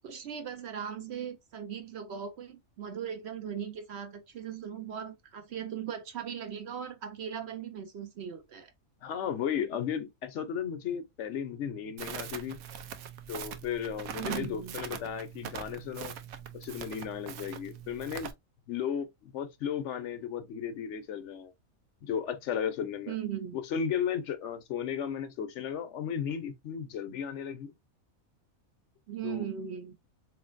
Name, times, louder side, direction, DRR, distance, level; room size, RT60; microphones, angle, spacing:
voice 1, 0.0-8.7 14.2-14.7 23.1-23.6 29.1-29.9, right 8 dB, 60° right, 0.7 m, -38 dB
voice 2, 9.0-12.6 13.3-16.1 16.5-18.3 18.7-21.5 22.0-23.2 23.5-27.7 29.2-29.5, left 8 dB, 60° left, 0.9 m, -35 dB
Crackle, 12.0-18.3, right 8 dB, 90° right, 1.1 m, -42 dB
4.0 x 3.1 x 2.5 m
omnidirectional pair, 1.5 m